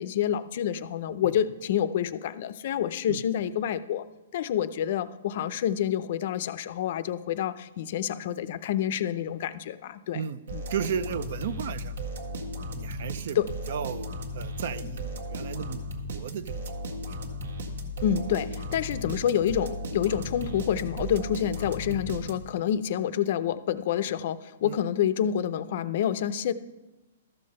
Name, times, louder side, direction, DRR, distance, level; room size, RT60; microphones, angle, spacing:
voice 1, 0.0-4.0 4.3-10.2 10.5-10.6 13.4-13.5 18.0-26.5, left 10 dB, 45° left, 14 dB, 0.5 m, -28 dB
sound 1, 10.5-22.7, equal, 75° right, 1.7 m, -36 dB
voice 2, 10.7-12.0 12.7-13.4 13.7-15.8 16.1-16.6 16.9-17.2 21.9-22.0 24.6-24.8, right 8 dB, 50° right, 16 dB, 0.5 m, -34 dB
13.0 x 6.6 x 5.4 m, 1.1 s
hypercardioid pair, 165°, 0 cm